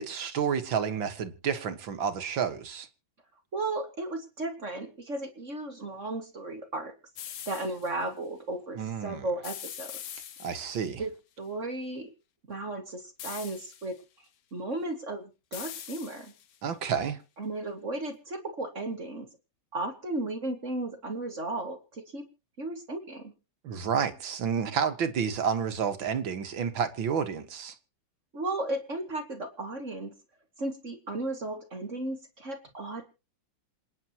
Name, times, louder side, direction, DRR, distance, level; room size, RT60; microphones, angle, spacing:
voice 1, 0.0-2.9 8.7-9.3 10.4-11.0 16.6-17.2 23.6-27.8, right 7 dB, 90° right, 2.3 m, -30 dB
voice 2, 3.5-6.9 7.5-9.9 11.0-11.1 11.4-12.1 12.5-14.0 14.5-16.3 17.4-19.3 19.7-22.3 22.6-23.3 28.3-30.1 30.6-33.0, right 2 dB, 40° right, 2.3 m, -35 dB
sound 1, 7.2-7.9 9.4-10.9 13.2-14.0 15.5-16.6, left 9 dB, 60° left, 1.2 m, -42 dB
27.0 x 10.0 x 3.0 m
omnidirectional pair, 2.0 m